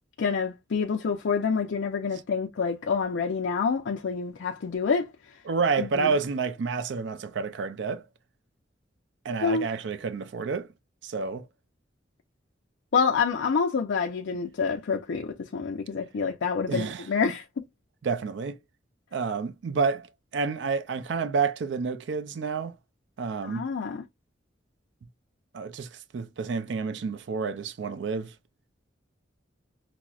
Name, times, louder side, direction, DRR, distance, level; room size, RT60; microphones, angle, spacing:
voice 1, 0.2-5.4 5.8-6.2 9.4-9.7 12.9-17.5 23.4-24.0, left 5 dB, 80° left, 0.5 m, -27 dB
voice 2, 5.5-8.1 9.2-10.7 11.0-11.5 16.7-17.1 18.0-18.6 19.1-20.1 20.3-22.8 23.2-23.6 25.5-28.3, right 5 dB, 70° right, 0.4 m, -29 dB
5.8 x 2.0 x 2.3 m
head